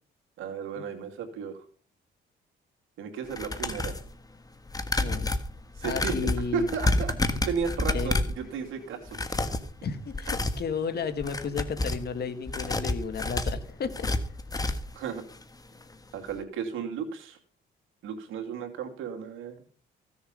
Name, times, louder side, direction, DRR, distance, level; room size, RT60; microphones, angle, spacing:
voice 1, 0.4-1.6 3.0-3.9 5.7-6.2 6.5-9.4 15.0-15.2 16.1-17.4 18.0-19.7, right 6 dB, 85° right, 3 dB, 2.6 m, -34 dB
rasguños madera, 3.3-4.1 4.7-8.4 9.1-9.7 10.1-10.6 11.1-12.1 12.5-15.0 15.3-15.4 15.8-15.9, left 2 dB, 20° left, 1.4 m, -29 dB
voice 2, 5.0-5.3 5.8-6.7 7.9-8.1 9.8-14.1, left 6 dB, 55° left, 9 dB, 1.9 m, -33 dB
15.5 x 7.1 x 5.3 m, 0.42 s
cardioid pair, 90°, 20 cm